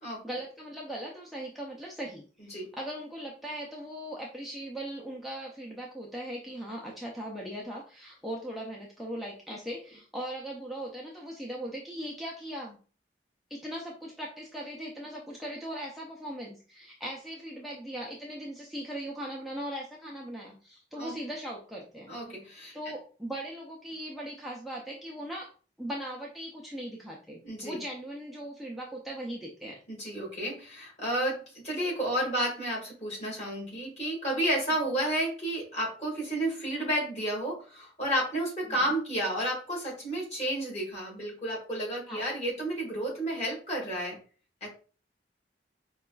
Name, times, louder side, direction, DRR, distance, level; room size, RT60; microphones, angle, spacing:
voice 1, 0.2-12.8 13.5-22.1 22.7-25.5 25.8-29.8 38.7-38.9 42.1-42.3, right 1 dB, ahead, -4 dB, 0.4 m, -39 dB
voice 2, 22.1-22.8 27.4-27.8 29.9-44.2 44.6-44.7, right 1 dB, 40° left, -3 dB, 1.7 m, -31 dB
4.8 x 2.3 x 2.2 m, 0.38 s
head